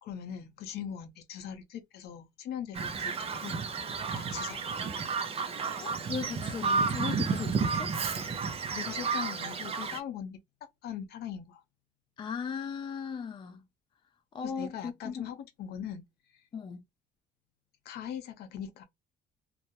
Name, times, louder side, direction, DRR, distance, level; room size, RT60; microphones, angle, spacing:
voice 1, 0.0-3.2 3.4-3.6 4.1-4.7 8.7-10.4 10.8-11.6 14.4-16.0 17.8-18.8, left 9 dB, 70° left, 0.6 m, -40 dB
Bird vocalization bird call bird song, 2.7-10.0, right 5 dB, 35° right, 0.5 m, -32 dB
voice 2, 5.8-7.9 12.2-13.6 14.3-15.2 16.5-16.8, left 6 dB, 30° left, 0.4 m, -37 dB
2.2 x 2.0 x 2.8 m
cardioid pair, 110°, 17 cm